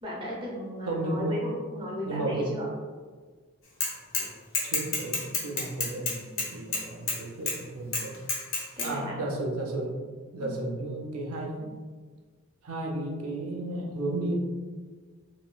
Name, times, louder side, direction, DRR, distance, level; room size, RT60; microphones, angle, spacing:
voice 1, 0.0-2.7 8.8-9.2 10.4-10.6, equal, 20° right, -3 dB, 0.5 m, -35 dB
voice 2, 0.9-1.4 2.0-2.6 4.6-8.2 8.8-10.0 10.3-11.8 12.6-14.3, right 2 dB, 80° right, 0 dB, 0.6 m, -33 dB
Bicycle / Mechanisms, 3.8-4.3 4.5-7.2 7.5-7.6 7.9-8.9, left 3 dB, 65° left, 0.7 m, -29 dB
3.1 x 2.6 x 2.2 m, 1.5 s
head